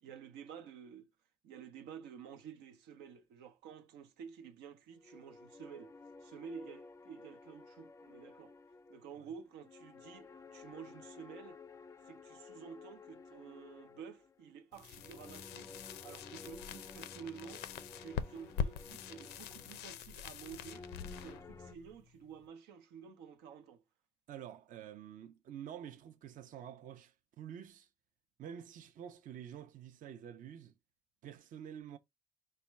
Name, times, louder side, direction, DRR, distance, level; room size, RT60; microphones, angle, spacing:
voice 1, 0.0-1.1 1.4-5.9 6.2-8.5 8.9-11.6 12.1-15.7 16.0-17.6 18.0-20.8 21.2-23.8, right 7 dB, 90° right, 0.7 m, -51 dB
sound 1, 5.0-21.7, left 4 dB, 15° left, 0.3 m, -54 dB
sound 2, 14.7-22.5, left 8 dB, 85° left, 0.5 m, -44 dB
voice 2, 24.3-27.9 28.4-30.7 31.2-32.0, right 9 dB, 50° right, 0.5 m, -48 dB
4.1 x 2.2 x 4.5 m
cardioid pair, 110°, 17 cm